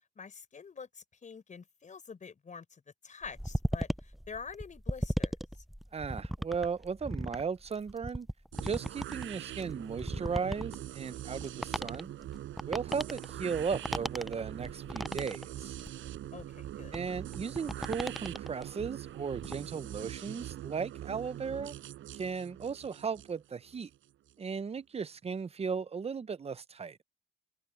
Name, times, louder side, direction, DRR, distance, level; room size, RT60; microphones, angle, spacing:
voice 1, 0.2-5.3 16.3-17.0, left 5 dB, 40° left, 4.3 m, -46 dB
sound 1, 3.2-18.7 19.1-19.5, equal, ahead, 0.4 m, -37 dB
voice 2, 5.9-8.3 8.6-12.1 12.7-15.8 16.9-21.7 22.1-23.9 24.4-27.0, right 6 dB, 30° right, 0.7 m, -36 dB
sound 2, 8.5-24.3, right 13 dB, 80° right, 5.6 m, -43 dB
cardioid pair, 90°, 20 cm